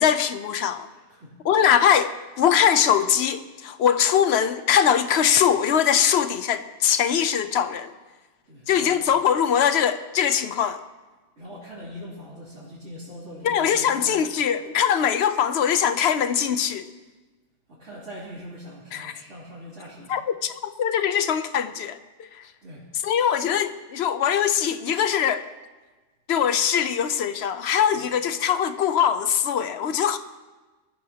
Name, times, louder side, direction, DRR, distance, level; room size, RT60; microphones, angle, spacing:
voice 1, 0.0-0.9 1.4-7.9 8.7-10.8 13.4-16.9 18.9-19.1 20.1-22.3 23.0-25.4 26.3-30.2, left 8 dB, 60° left, 0.9 m, -22 dB
voice 2, 0.9-1.7 8.5-9.1 11.4-14.2 17.7-20.2 22.6-22.9 27.9-28.1, equal, 70° right, 3.5 m, -42 dB
23.0 x 14.5 x 2.9 m
omnidirectional pair, 1.3 m